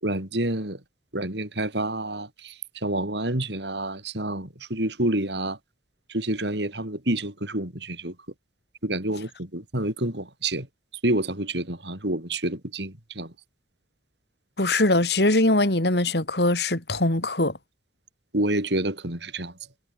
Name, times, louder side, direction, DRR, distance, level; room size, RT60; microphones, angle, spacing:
voice 1, 0.0-0.8 1.1-2.5 2.8-5.6 6.1-8.1 8.8-10.7 11.0-13.3 18.3-19.5, right 1 dB, 70° right, 5.4 m, -28 dB
voice 2, 14.6-17.6, left 2 dB, 65° left, 3.1 m, -22 dB
head